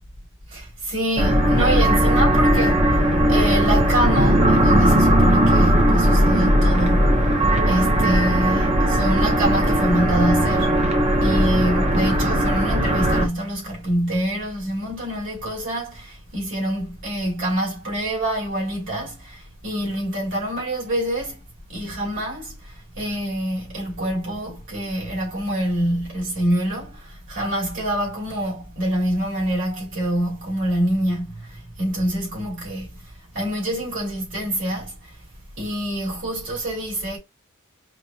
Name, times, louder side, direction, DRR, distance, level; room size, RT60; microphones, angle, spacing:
voice 1, 0.5-3.0 3.3-7.2 7.7-10.7 11.2-21.4 21.7-32.9 33.3-34.9 35.6-37.2, right 1 dB, 60° right, 2.8 m, -26 dB
sound 1, 1.2-13.3, equal, 30° right, 1.0 m, -18 dB
5.2 x 2.3 x 2.8 m
head